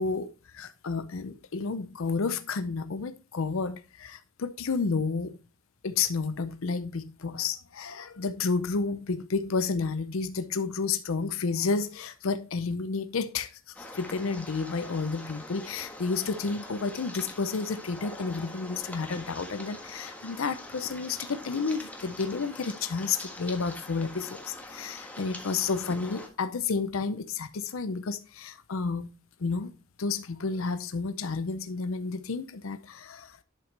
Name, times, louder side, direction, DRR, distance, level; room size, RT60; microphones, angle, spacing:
voice 1, 0.0-5.3 5.8-29.1 29.4-29.7 30.0-33.4, left 4 dB, 75° left, 0.6 m, -31 dB
sound 1, 13.7-26.3, left 1 dB, 5° left, 1.5 m, -44 dB
11.0 x 5.9 x 3.3 m
head